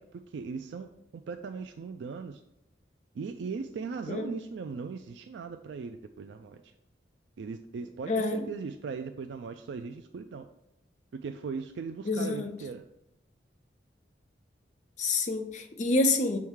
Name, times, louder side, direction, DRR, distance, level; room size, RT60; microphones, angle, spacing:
voice 1, 0.0-2.4 3.1-6.7 7.4-10.5 11.2-12.8, right 5 dB, 70° right, 0.3 m, -39 dB
voice 2, 8.1-8.5 12.0-12.5 15.0-16.4, left 2 dB, 40° left, 0.6 m, -27 dB
6.4 x 3.6 x 4.6 m
head